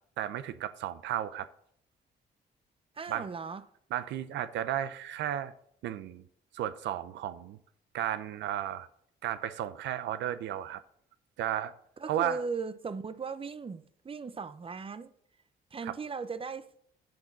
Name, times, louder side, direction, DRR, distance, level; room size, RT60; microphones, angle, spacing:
voice 1, 0.2-1.5 3.1-3.3 3.9-5.5 5.8-6.3 6.5-7.6 7.9-8.9 9.2-10.8 11.4-11.7 12.1-12.4 15.8-16.0, right 11 dB, 85° right, 0.5 m, -33 dB
voice 2, 3.0-3.6 12.0-15.1 15.7-16.7, right 5 dB, 30° right, 0.7 m, -37 dB
10.5 x 3.7 x 7.1 m
supercardioid pair, 65°, 18 cm